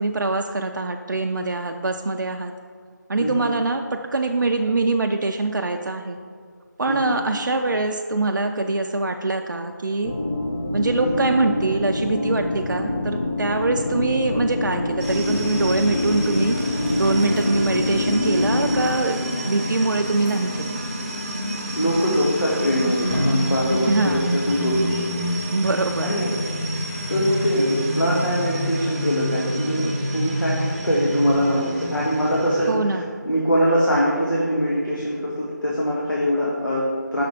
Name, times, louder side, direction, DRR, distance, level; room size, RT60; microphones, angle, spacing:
voice 1, 0.0-2.5 3.1-6.2 6.8-10.1 10.7-16.6 17.0-19.2 19.5-20.8 23.9-24.4 25.5-26.1 32.7-33.1, right 2 dB, 75° right, 4 dB, 0.4 m, -23 dB
voice 2, 3.2-3.5 6.9-7.2 11.0-11.3 21.8-25.1 26.0-26.5 27.1-37.2, equal, 90° left, -5 dB, 1.2 m, -23 dB
sound 1, 10.0-18.9, left 2 dB, 30° left, 0.4 m, -26 dB
sound 2, 15.0-32.7, equal, 20° right, 0.7 m, -28 dB
sound 3, 16.3-24.0, equal, 5° left, 1.1 m, -35 dB
5.8 x 3.4 x 5.0 m, 2.1 s
figure-of-eight pair, 165°, 10 cm